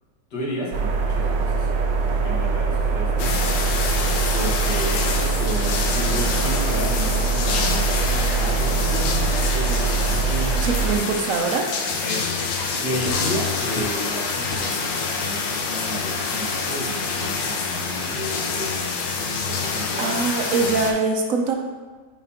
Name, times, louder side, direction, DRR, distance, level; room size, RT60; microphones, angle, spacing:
voice 1, 0.3-1.7 2.0-3.4 4.3-11.3 12.0-12.4 12.8-19.2 19.4-20.2, equal, 65° left, -4 dB, 2.0 m, -32 dB
sound 1, 0.7-11.0, right 4 dB, 80° right, 1.3 m, -23 dB
sound 2, 3.2-20.9, left 4 dB, 85° left, 1.4 m, -27 dB
voice 2, 10.6-11.6 20.0-21.5, right 4 dB, 65° right, 2 dB, 0.9 m, -23 dB
sound 3, 12.6-13.3 13.8-14.1 14.5-14.8 15.2-15.6 17.4-17.5, left 2 dB, 45° left, 0.8 m, -33 dB
9.3 x 4.1 x 2.8 m, 1.4 s
omnidirectional pair, 1.9 m